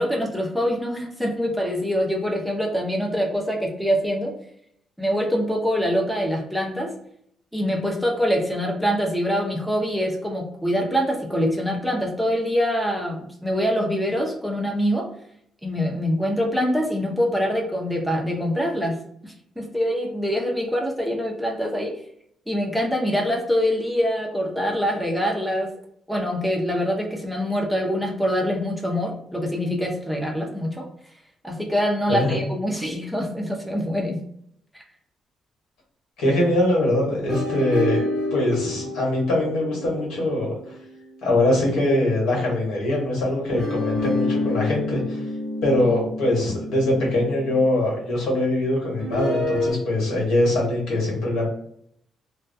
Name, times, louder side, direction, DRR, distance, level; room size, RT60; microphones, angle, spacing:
voice 1, 0.0-4.3 5.0-6.9 7.5-15.0 15.6-19.0 19.2-21.9 22.5-25.7 26.1-30.9 31.4-34.2 34.7-34.8, equal, ahead, 0 dB, 0.6 m, -24 dB
voice 2, 36.2-40.5 41.2-45.2 45.6-51.5, left 1 dB, 85° left, -2 dB, 1.2 m, -22 dB
sound 1, 37.3-41.8 43.5-47.7 49.0-49.7, left 1 dB, 40° left, 1.3 m, -29 dB
2.2 x 2.2 x 2.6 m, 0.69 s
cardioid pair, 90°, 0 cm